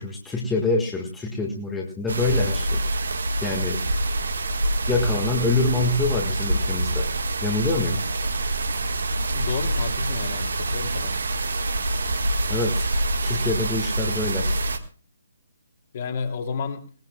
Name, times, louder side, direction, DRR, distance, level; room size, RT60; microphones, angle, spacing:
voice 1, 0.0-3.0 3.4-3.8 4.9-8.0 12.5-12.9 13.2-14.5, left 3 dB, 10° left, -1 dB, 1.7 m, -26 dB
sound 1, 2.1-14.8, right 1 dB, 60° right, 1.5 m, -26 dB
voice 2, 9.3-11.1 15.9-16.8, left 5 dB, 40° left, 3 dB, 2.8 m, -31 dB
20.5 x 19.0 x 2.3 m, 0.39 s
figure-of-eight pair, 135°, 0 cm